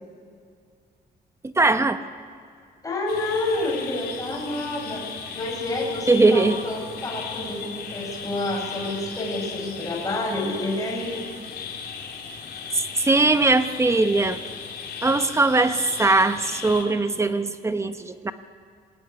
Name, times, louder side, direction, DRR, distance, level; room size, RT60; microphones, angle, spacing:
voice 1, 1.4-2.0 6.1-6.6 13.0-14.4 15.0-18.3, right 3 dB, 15° right, 9 dB, 1.2 m, -20 dB
voice 2, 2.8-5.0 5.3-11.2, left 2 dB, 20° left, -1 dB, 6.2 m, -29 dB
sound 1, 3.1-16.8, left 6 dB, 85° left, 4.5 m, -36 dB
26.5 x 20.0 x 10.0 m, 2.4 s
cardioid pair, 130°, 17 cm